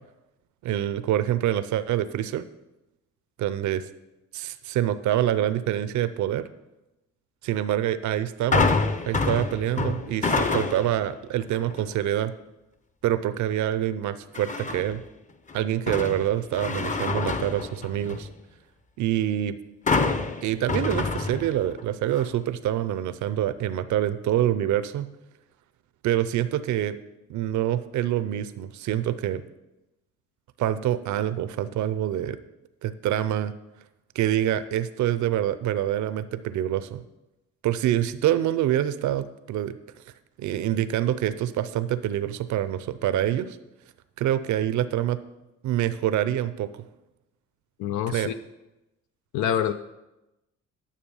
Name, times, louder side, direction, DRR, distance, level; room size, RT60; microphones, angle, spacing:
voice 1, 0.6-2.5 3.4-3.8 4.3-6.5 7.4-8.7 9.0-12.3 13.0-15.0 15.5-18.3 19.0-19.6 20.4-25.1 26.0-27.0 27.3-29.4 30.6-32.4 32.8-33.5 34.1-37.0 37.6-39.8 40.4-43.6 44.2-45.2 45.6-46.7 48.1-48.3, right 12 dB, 70° right, 13 dB, 0.6 m, -26 dB
sound 1, 8.5-11.0 11.5-11.9 14.3-15.0 15.5-18.3 19.9-21.8 22.1-22.3, left 3 dB, 25° left, 0.7 m, -27 dB
voice 2, 47.8-48.3 49.3-49.7, left 10 dB, 85° left, 10 dB, 0.5 m, -26 dB
10.0 x 6.7 x 5.5 m, 0.97 s
cardioid pair, 90°, 30 cm